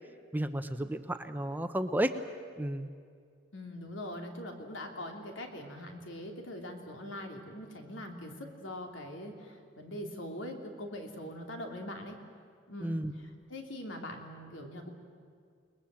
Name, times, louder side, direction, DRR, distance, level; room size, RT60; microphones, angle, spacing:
voice 1, 0.3-2.1 2.6-2.9 12.8-13.1, right 1 dB, 10° right, 9 dB, 0.7 m, -32 dB
voice 2, 3.5-12.2 12.7-14.9, left 1 dB, 80° left, 3 dB, 3.1 m, -42 dB
29.0 x 20.5 x 7.6 m, 2.1 s
head